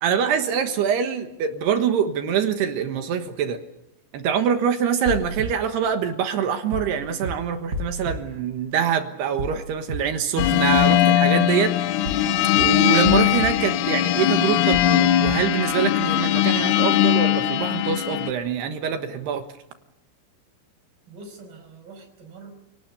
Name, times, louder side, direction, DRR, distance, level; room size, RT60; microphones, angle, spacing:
voice 1, 0.0-3.6 4.1-11.7 12.6-19.4, right 7 dB, 65° right, 7 dB, 2.9 m, -24 dB
sound 1, 5.1-5.5 6.7-6.9 7.2-7.3 7.7-8.2 9.4-9.6 9.9-10.0 10.4-10.8 12.1-12.3 12.6-12.7 13.0-13.5 14.7-14.9 15.2-15.3, equal, 20° right, 4.3 m, -29 dB
sound 2, 10.4-18.3, left 12 dB, 85° left, 3.6 m, -20 dB
voice 2, 21.1-22.5, right 3 dB, 45° right, 5 dB, 6.4 m, -44 dB
29.5 x 18.5 x 7.0 m, 0.93 s
omnidirectional pair, 5.8 m